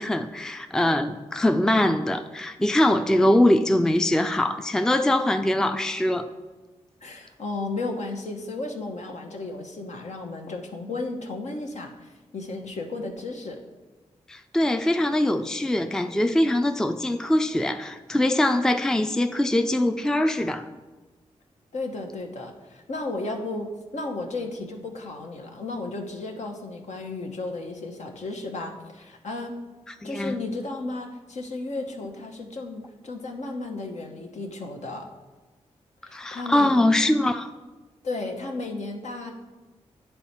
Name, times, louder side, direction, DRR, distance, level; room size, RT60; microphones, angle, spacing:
voice 1, 0.0-6.3 14.3-20.7 30.0-30.4 36.1-37.5, left 1 dB, 5° left, 8 dB, 0.4 m, -22 dB
voice 2, 7.0-13.6 21.7-29.6 30.0-35.1 36.0-36.7 38.0-39.3, left 2 dB, 70° left, 3 dB, 1.0 m, -34 dB
9.8 x 3.4 x 4.3 m, 1.2 s
cardioid pair, 50°, 12 cm